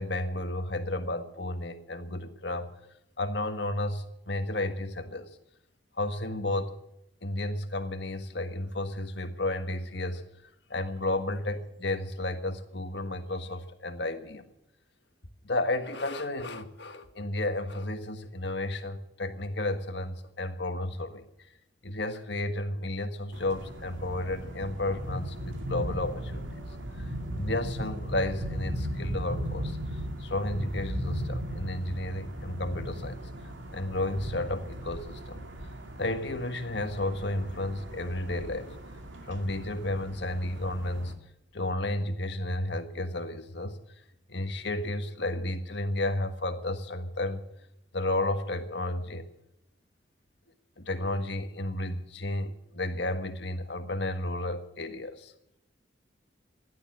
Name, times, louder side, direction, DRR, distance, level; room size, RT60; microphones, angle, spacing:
voice 1, 0.0-2.7 3.2-5.3 6.0-6.8 7.2-10.2 10.7-14.5 15.4-21.3 21.8-26.7 27.0-29.8 30.2-33.2 33.7-35.4 36.0-38.8 39.2-41.1 41.5-43.8 44.3-47.4 47.9-49.3 50.8-55.3, left 1 dB, 65° left, 7 dB, 1.6 m, -32 dB
sound 1, 23.3-41.1, equal, 90° right, 2.2 m, -37 dB
15.5 x 12.0 x 7.8 m, 0.82 s
head